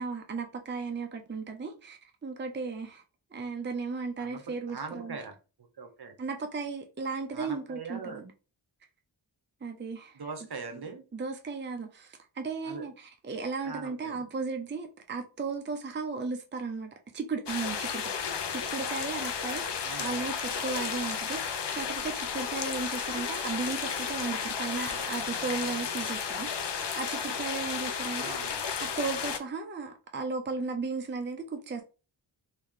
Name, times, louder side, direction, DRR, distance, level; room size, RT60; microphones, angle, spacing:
voice 1, 0.0-3.0 3.3-5.2 6.2-8.3 9.6-10.2 11.1-18.1 18.5-31.8, right 4 dB, 25° right, 0.6 m, -35 dB
voice 2, 4.7-5.3 5.8-6.1 7.3-8.2 10.1-11.0 12.6-12.9 13.6-14.2 19.8-20.2 20.5-20.7 28.2-28.6, right 4 dB, 50° right, 0.9 m, -41 dB
sound 1, 17.5-29.4, left 6 dB, 60° left, 0.7 m, -33 dB
3.1 x 2.7 x 3.6 m
wide cardioid pair, 60°, 48 cm